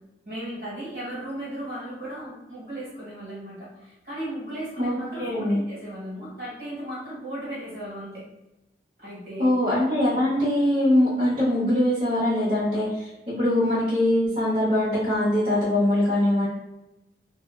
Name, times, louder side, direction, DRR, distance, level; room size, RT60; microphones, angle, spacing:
voice 1, 0.2-8.2 9.0-9.5, right 1 dB, 55° right, -8 dB, 1.3 m, -36 dB
voice 2, 4.8-5.6 9.4-13.1 13.4-16.5, left 1 dB, 30° right, -12 dB, 0.8 m, -22 dB
2.7 x 2.1 x 2.3 m, 0.96 s
head